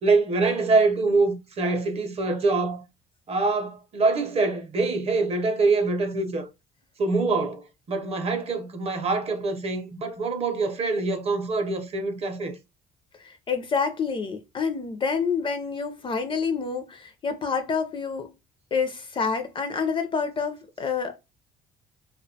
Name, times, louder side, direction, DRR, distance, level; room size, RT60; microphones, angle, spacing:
voice 1, 0.0-2.8 3.3-6.5 7.0-12.6, right 3 dB, 35° right, 0.5 m, -24 dB
voice 2, 13.2-18.3 18.7-21.2, left 5 dB, 30° left, 0.4 m, -28 dB
2.3 x 2.1 x 2.6 m
cardioid pair, 110°, 17 cm